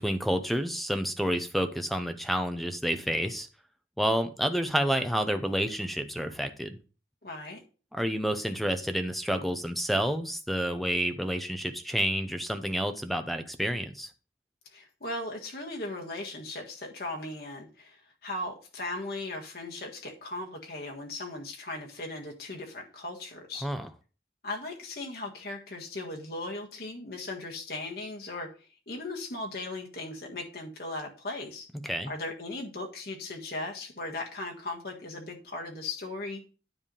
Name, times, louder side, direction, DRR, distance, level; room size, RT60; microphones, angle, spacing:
voice 1, 0.0-3.5 4.0-6.8 7.9-14.1 23.6-23.9 31.8-32.1, equal, ahead, 8 dB, 0.7 m, -29 dB
voice 2, 7.2-7.6 14.7-23.7 24.4-28.5 28.9-31.7 32.0-36.4, left 2 dB, 60° left, 0 dB, 1.7 m, -38 dB
9.9 x 3.5 x 5.3 m, 0.36 s
head